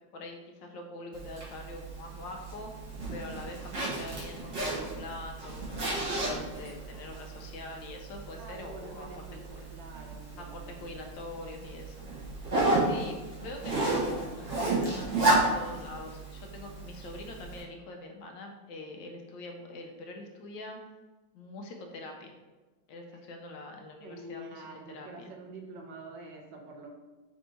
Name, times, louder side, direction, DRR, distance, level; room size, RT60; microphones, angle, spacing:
voice 1, 0.1-2.8 3.1-9.7 10.4-12.1 12.4-12.5 12.8-20.8 21.3-22.3 22.9-24.6 24.9-25.3, left 2 dB, 80° left, 3 dB, 1.3 m, -44 dB
Zipper (clothing), 1.1-17.6, right 2 dB, 45° right, 1.3 m, -33 dB
voice 2, 8.4-10.9 24.0-26.9, right 2 dB, 75° right, 2 dB, 1.2 m, -46 dB
3.5 x 2.7 x 4.2 m, 1.2 s
omnidirectional pair, 2.1 m